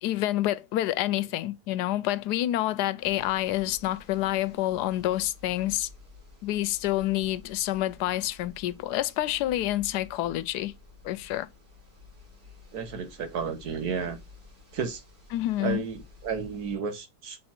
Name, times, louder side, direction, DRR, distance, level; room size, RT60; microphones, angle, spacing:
voice 1, 0.0-5.9 6.4-10.7 11.0-11.5 15.3-15.8, left 14 dB, 80° left, 1.1 m, -28 dB
sound 1, 3.0-16.8, left 4 dB, 40° right, 4.3 m, -52 dB
voice 2, 12.7-14.2 14.7-15.0 15.6-17.4, right 6 dB, 70° right, 1.8 m, -32 dB
6.5 x 3.8 x 4.3 m
omnidirectional pair, 1.7 m